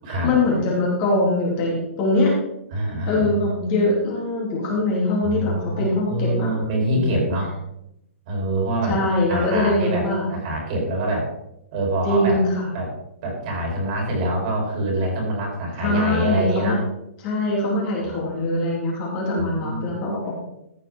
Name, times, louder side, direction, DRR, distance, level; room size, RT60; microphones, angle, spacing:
voice 1, 0.2-2.3 3.1-6.5 6.9-7.3 8.9-10.3 12.0-12.7 15.8-16.8 17.2-20.4, left 2 dB, 25° left, -4 dB, 3.5 m, -22 dB
voice 2, 2.7-3.5 5.2-7.5 8.3-9.0 9.3-11.3 11.7-12.4 12.7-12.9 13.2-16.8 18.0-18.2 19.4-19.9, right 1 dB, 30° right, -1 dB, 4.2 m, -25 dB
14.5 x 8.5 x 3.9 m, 0.82 s
hypercardioid pair, 170°, 7 cm